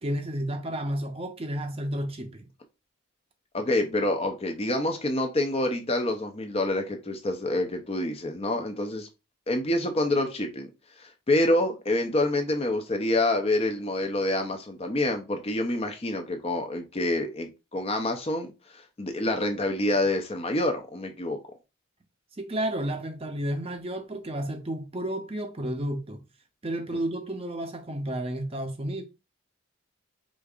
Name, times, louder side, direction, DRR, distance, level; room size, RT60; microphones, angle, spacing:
voice 1, 0.0-2.4 22.4-26.2 26.6-29.0, right 1 dB, 25° right, 0.6 m, -31 dB
voice 2, 3.5-9.1 9.5-10.7 11.0-21.4, left 1 dB, 25° left, 0.5 m, -27 dB
5.1 x 3.6 x 2.4 m
head